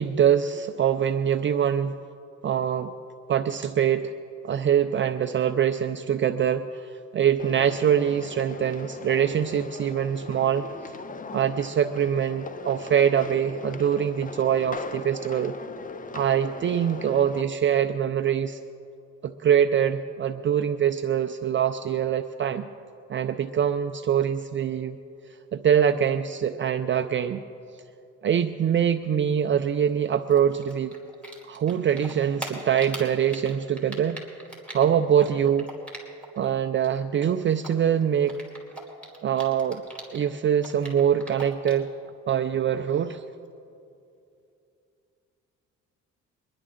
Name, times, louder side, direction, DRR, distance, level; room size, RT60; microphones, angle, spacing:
voice 1, 0.0-1.9 2.4-2.9 3.3-4.1 4.4-10.7 11.3-15.5 16.1-18.6 19.2-22.6 23.1-25.0 25.5-27.4 28.2-30.9 31.5-34.2 34.7-35.7 36.4-38.4 39.2-39.8 40.1-41.9 42.3-43.2, right 9 dB, 40° right, 7 dB, 0.5 m, -24 dB
sound 1, 7.4-17.4, left 4 dB, 25° left, 0.6 m, -39 dB
Typing, 30.3-31.7 32.0-36.4 36.7-40.3 40.6-41.9, right 1 dB, 5° left, 3.2 m, -41 dB
23.5 x 10.5 x 3.8 m, 2.6 s
cardioid pair, 90°, 30 cm